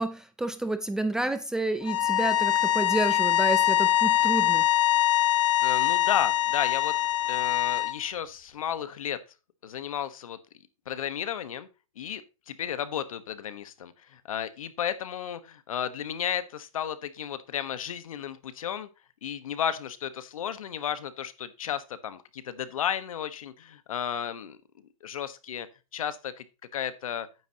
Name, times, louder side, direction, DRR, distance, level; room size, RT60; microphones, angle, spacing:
voice 1, 0.0-4.6, right 2 dB, 5° right, 0.4 m, -29 dB
sound 1, 1.8-7.9, left 13 dB, 60° left, 1.6 m, -23 dB
voice 2, 5.6-6.9 7.3-9.2 9.6-10.4 10.9-11.7 12.0-18.9 19.2-24.6 25.0-25.7 25.9-26.4 26.7-27.3, left 9 dB, 75° left, 1.3 m, -33 dB
10.5 x 9.3 x 2.9 m
hypercardioid pair, 150°, 18 cm